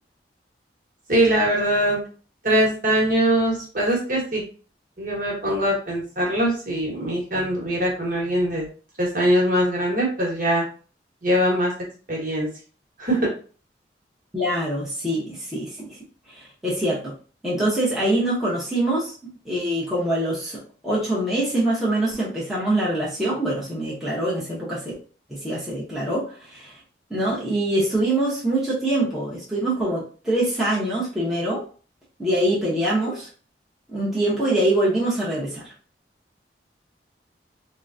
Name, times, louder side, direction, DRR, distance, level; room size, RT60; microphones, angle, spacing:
voice 1, 1.1-2.0 2.4-4.4 5.0-8.7 9.0-10.6 11.2-11.7 12.1-12.5 13.0-13.3, right 1 dB, 50° right, -3 dB, 1.3 m, -22 dB
voice 2, 14.3-16.0 16.3-17.1 17.4-19.1 19.4-24.9 25.3-26.8 27.1-31.6 32.2-33.3 33.9-35.7, right 1 dB, ahead, -8 dB, 0.9 m, -24 dB
3.7 x 2.2 x 2.6 m, 0.39 s
head